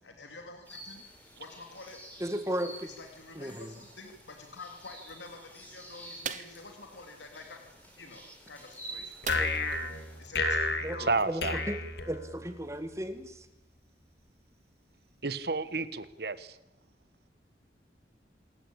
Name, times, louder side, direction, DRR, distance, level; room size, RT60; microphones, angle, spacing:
voice 1, 0.0-1.1 1.3-2.0 2.8-7.6 8.0-9.2 10.2-10.8, left 3 dB, 90° left, 4 dB, 2.8 m, -48 dB
sound 1, 0.6-10.2, right 1 dB, 10° left, 5.3 m, -50 dB
voice 2, 2.2-2.9 3.3-3.7 9.3-9.9 10.8-11.0 11.3-11.8 12.0-13.5, equal, 15° right, 10 dB, 1.7 m, -35 dB
sound 2, 6.2-6.6 9.2-9.8 10.2-10.3 10.7-10.9, right 8 dB, 40° right, 0.7 m, -38 dB
sound 3, 9.2-12.7, left 3 dB, 65° left, 2.3 m, -32 dB
voice 3, 11.0-11.6 15.2-16.6, right 3 dB, 60° right, 14 dB, 1.3 m, -31 dB
27.0 x 14.5 x 8.7 m, 0.89 s
head